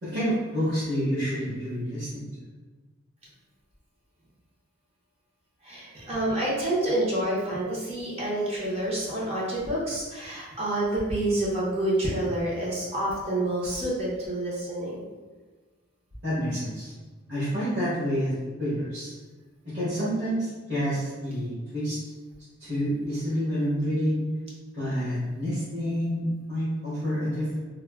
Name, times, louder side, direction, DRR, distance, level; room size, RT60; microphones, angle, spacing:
voice 1, 0.0-2.3 16.2-16.9 17.3-18.3 18.6-19.1 19.7-22.0 22.6-24.3 24.7-27.6, equal, 55° right, -14 dB, 1.1 m, -28 dB
voice 2, 5.6-15.0, right 1 dB, 30° right, -6 dB, 0.6 m, -28 dB
3.3 x 2.0 x 2.2 m, 1.3 s
head